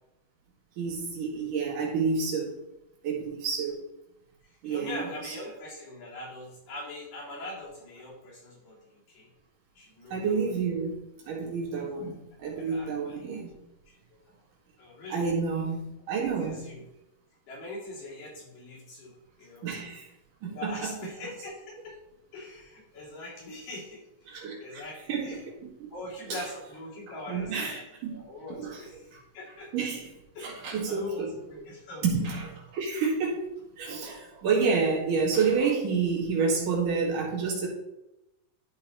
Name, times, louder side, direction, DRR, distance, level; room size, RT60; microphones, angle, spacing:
voice 1, 0.8-2.6 3.0-3.8 4.6-5.3 10.1-10.9 11.3-13.5 15.1-16.7 19.6-20.1 20.4-20.9 24.3-24.8 25.1-25.4 25.8-25.9 26.3-26.4 27.3-28.2 28.5-28.8 29.1-29.2 29.7-30.1 30.4-31.3 32.0-33.4 33.8-37.7, right 5 dB, 70° right, -3 dB, 3.4 m, -29 dB
voice 2, 4.4-9.3 9.8-10.5 11.8-12.0 12.7-13.3 13.9-14.2 14.8-15.3 16.1-16.8 17.5-19.7 20.4-22.0 22.3-25.4 25.9-27.8 28.1-29.1 29.3-29.9 30.3-32.0, left 1 dB, 85° left, -6 dB, 4.7 m, -42 dB
12.5 x 4.2 x 4.1 m, 0.91 s
omnidirectional pair, 3.8 m